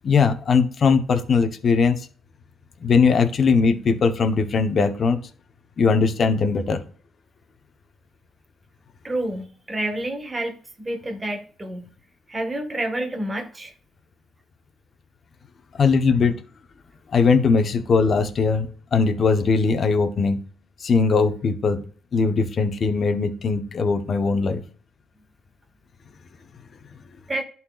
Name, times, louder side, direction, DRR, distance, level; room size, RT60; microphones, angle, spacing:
voice 1, 0.0-2.1 2.8-5.2 5.8-6.8 15.8-16.4 17.1-20.4 20.8-21.8 22.1-24.6, left 5 dB, 50° left, 8 dB, 1.1 m, -20 dB
voice 2, 9.0-12.0 12.3-13.7 27.3-27.4, right 1 dB, 20° right, 4 dB, 1.7 m, -29 dB
11.5 x 4.4 x 2.5 m, 0.44 s
cardioid pair, 90°, 0 cm